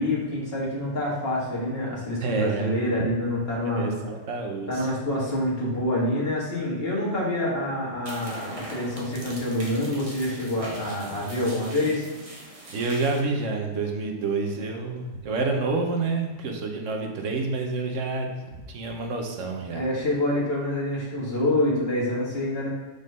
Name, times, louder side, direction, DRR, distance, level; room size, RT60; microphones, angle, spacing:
voice 1, 0.0-4.0 4.7-12.1 19.7-22.7, left 1 dB, 50° left, -5 dB, 2.0 m, -27 dB
voice 2, 2.2-2.7 3.6-4.9 12.7-18.3 18.7-19.9, right 3 dB, 75° right, 2 dB, 1.2 m, -28 dB
sound 1, 8.0-13.2, right 1 dB, 30° right, 0.8 m, -41 dB
5.0 x 4.1 x 5.3 m, 1.3 s
omnidirectional pair, 1.3 m